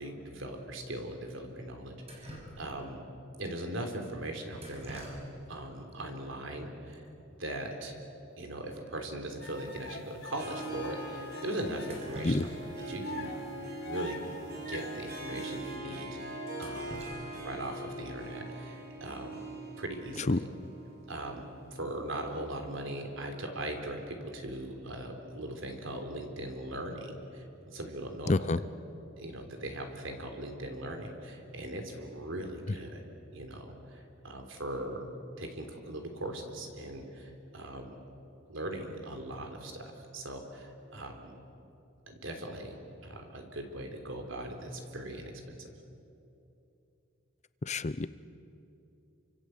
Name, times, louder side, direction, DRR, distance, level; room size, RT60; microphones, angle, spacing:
voice 1, 0.0-3.0 3.4-5.2 5.5-7.1 7.4-8.0 8.4-12.5 12.9-13.4 13.8-14.2 14.7-16.1 16.6-17.0 17.4-19.4 19.8-20.5 21.1-28.5 29.2-33.0 33.3-35.1 35.4-37.9 38.5-39.8 40.1-41.4 42.1-45.7, right 1 dB, 65° right, 4 dB, 3.7 m, -40 dB
Drip, 2.0-3.0 4.5-5.6 5.9-6.0 6.9-7.0 7.3-7.5 7.8-7.9 8.4-8.5 8.9-9.0 9.6-9.7 10.4-10.5 11.7-12.9 13.2-13.3 14.7-14.8 15.2-15.3 15.7-15.8 16.3-17.9 19.9-20.2 20.6-21.0, equal, 30° right, 5.8 m, -48 dB
sound 1, 9.4-11.9 12.4-12.5 13.0-15.7, left 3 dB, 60° left, 3.1 m, -45 dB
Harp, 10.3-22.1, right 2 dB, 50° right, 4.9 m, -42 dB
voice 2, 28.3-28.6 47.7-48.1, left 2 dB, 35° left, 15 dB, 0.6 m, -27 dB
28.5 x 25.5 x 8.0 m, 2.9 s
head